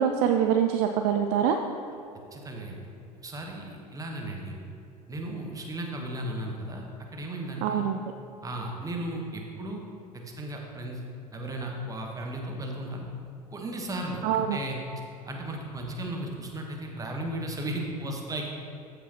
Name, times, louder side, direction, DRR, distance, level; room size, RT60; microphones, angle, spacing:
voice 1, 0.0-1.6 7.6-8.0 14.2-14.6, right 8 dB, 45° right, 5 dB, 0.4 m, -24 dB
voice 2, 2.3-2.8 3.2-4.6 5.1-6.8 7.1-7.9 8.4-9.8 10.1-11.0 11.3-13.0 13.5-14.8 15.3-18.5, right 1 dB, 15° right, 1 dB, 1.3 m, -35 dB
14.0 x 5.1 x 3.0 m, 2.6 s
figure-of-eight pair, 70°, 20 cm